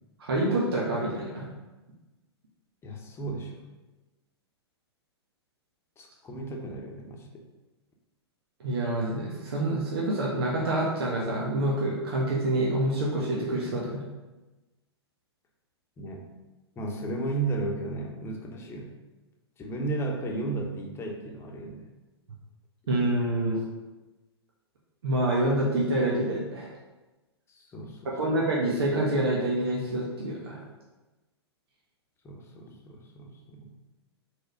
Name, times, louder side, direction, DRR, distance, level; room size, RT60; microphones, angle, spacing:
voice 1, 0.2-1.5 8.6-14.0 22.9-23.6 25.0-26.7 28.0-30.6, right 1 dB, 65° right, -4 dB, 1.5 m, -27 dB
voice 2, 2.8-3.6 6.0-7.4 16.0-16.3 16.8-18.9 19.6-21.9 27.5-28.1 32.2-33.7, right 2 dB, 20° left, 1 dB, 1.1 m, -34 dB
4.8 x 4.8 x 5.2 m, 1.1 s
figure-of-eight pair, 110°, 14 cm